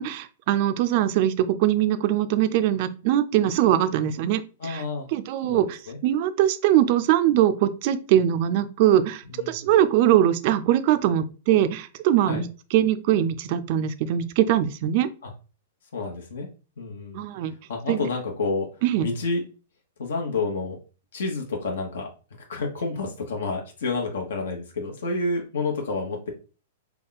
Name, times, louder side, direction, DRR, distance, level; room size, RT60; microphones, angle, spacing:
voice 1, 0.0-4.8 5.1-15.1 17.1-17.5 17.9-18.0 18.8-19.1, right 11 dB, 40° right, 12 dB, 0.4 m, -22 dB
voice 2, 4.6-5.1 5.4-6.0 9.3-9.6 12.2-12.4 15.2-15.3 15.9-16.5 16.8-17.2 17.7-18.7 19.0-19.4 20.0-20.8 21.1-22.1 22.5-26.3, left 3 dB, 80° left, 1 dB, 1.1 m, -29 dB
3.5 x 2.3 x 3.9 m, 0.35 s
hypercardioid pair, 160°, 0 cm